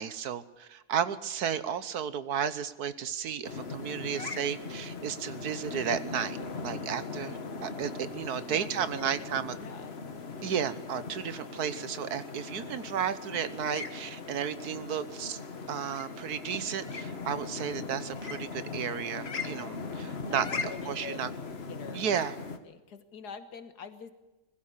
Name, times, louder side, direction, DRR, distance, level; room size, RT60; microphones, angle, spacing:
voice 1, 0.0-6.4 6.6-9.5 10.4-15.4 15.7-20.4 20.9-21.3 21.9-22.3, right 8 dB, 75° right, 14 dB, 1.5 m, -33 dB
sound 1, 3.4-22.6, left 4 dB, 40° left, 1.6 m, -39 dB
voice 2, 8.4-10.0 20.3-21.2 21.7-22.3 22.6-24.1, left 5 dB, 85° left, 10 dB, 2.0 m, -46 dB
20.5 x 15.5 x 8.4 m, 1.1 s
omnidirectional pair, 1.7 m